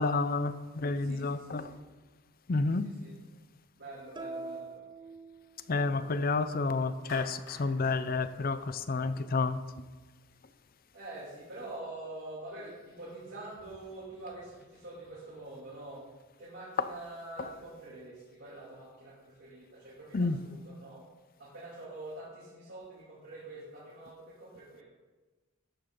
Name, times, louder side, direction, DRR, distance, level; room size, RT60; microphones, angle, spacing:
voice 1, 0.0-1.8 2.5-2.9 5.7-9.6 16.8-16.9 17.4-17.5 20.1-20.4, left 3 dB, 45° left, 13 dB, 0.6 m, -30 dB
voice 2, 1.0-1.8 2.8-3.1 3.8-4.8 10.9-16.0 16.4-21.0 21.4-24.8, right 2 dB, 55° right, -7 dB, 2.5 m, -46 dB
sound 1, 4.2-6.0, right 3 dB, 20° right, 0.6 m, -43 dB
Clapping, 7.1-9.4, left 2 dB, 75° left, 2.3 m, -50 dB
12.5 x 8.8 x 3.9 m, 1.2 s
head